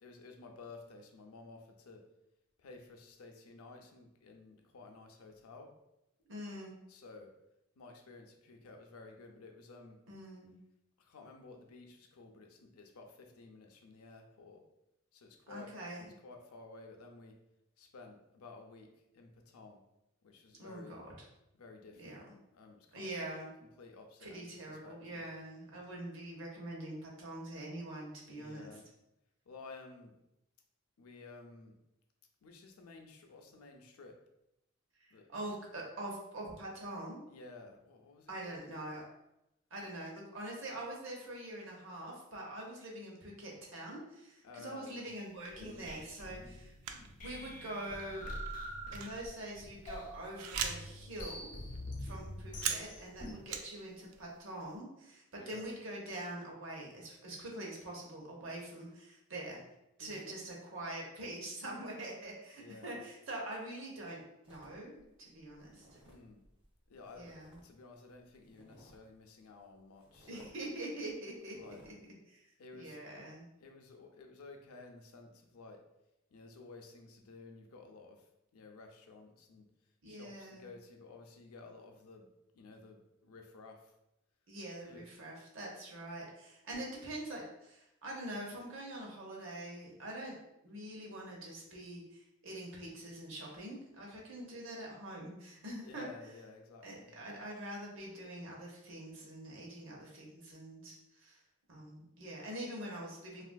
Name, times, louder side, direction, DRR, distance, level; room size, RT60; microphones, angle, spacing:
voice 1, 0.0-2.0 2.6-5.7 6.9-7.3 7.8-10.0 11.0-14.6 15.1-15.7 16.2-17.4 17.8-19.8 20.2-21.0 21.5-22.2 22.5-23.2 23.8-25.2 28.3-28.9 29.5-30.2 31.0-31.8 32.4-34.2 35.1-35.3 37.3-38.9 44.4-45.1 55.4-55.6 60.0-60.4 62.6-63.0 66.0-66.4 66.9-67.3 67.6-70.5 71.5-71.8 72.6-73.0 73.6-75.8 76.3-78.2 78.5-79.7 80.1-82.3 82.5-83.9 84.8-85.0 95.8-97.2, left 3 dB, 90° left, 3 dB, 0.5 m, -53 dB
voice 2, 6.3-6.8 10.1-10.6 15.5-16.1 20.6-21.3 22.0-22.4 22.9-23.5 24.2-28.8 35.0-37.2 38.3-39.0 39.7-48.3 48.9-51.6 52.0-59.6 60.0-66.0 67.2-67.6 70.3-71.9 72.3-73.5 80.0-80.7 84.5-90.4 90.6-96.1 96.8-101.4 101.7-103.4, right 1 dB, 65° right, -2 dB, 0.8 m, -44 dB
sound 1, 45.3-46.0 46.8-47.1 47.4-47.6 48.0-51.0 51.4-51.5 51.7-53.8 54.0-54.6, right 7 dB, 80° right, 0.3 m, -41 dB
sound 2, 45.5-53.3, equal, 35° left, 0.5 m, -45 dB
sound 3, 64.4-67.7 67.9-69.1 69.6-69.7 70.0-70.6 71.0-71.1 71.4-71.9, equal, 25° right, 0.6 m, -62 dB
3.4 x 2.4 x 2.2 m, 0.87 s
head